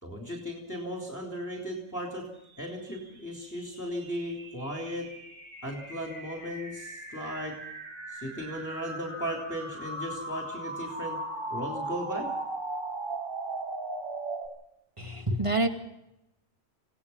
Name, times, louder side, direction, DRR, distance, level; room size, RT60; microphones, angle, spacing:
voice 1, 0.0-5.2 5.6-7.6 8.1-11.2 11.5-12.3, equal, 15° left, 0 dB, 3.3 m, -36 dB
sound 1, 2.6-14.5, right 2 dB, 40° right, 5.7 m, -38 dB
voice 2, 15.0-15.7, right 2 dB, 25° right, 3 dB, 2.7 m, -27 dB
28.0 x 18.0 x 5.7 m, 0.84 s
omnidirectional pair, 1.3 m